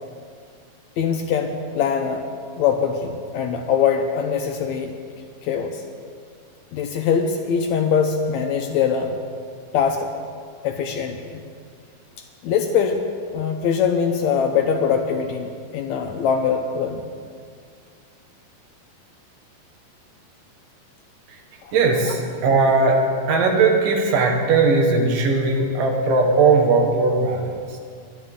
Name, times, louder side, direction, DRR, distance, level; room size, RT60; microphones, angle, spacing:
voice 1, 1.0-2.3 2.6-4.9 5.4-5.8 6.7-9.2 9.7-10.1 10.6-11.4 12.4-13.0 13.3-17.0 21.6-21.7, left 7 dB, 75° left, 5 dB, 1.7 m, -22 dB
voice 2, 21.7-27.8, right 3 dB, 85° right, 2 dB, 3.1 m, -19 dB
22.0 x 10.5 x 3.7 m, 2.1 s
omnidirectional pair, 3.7 m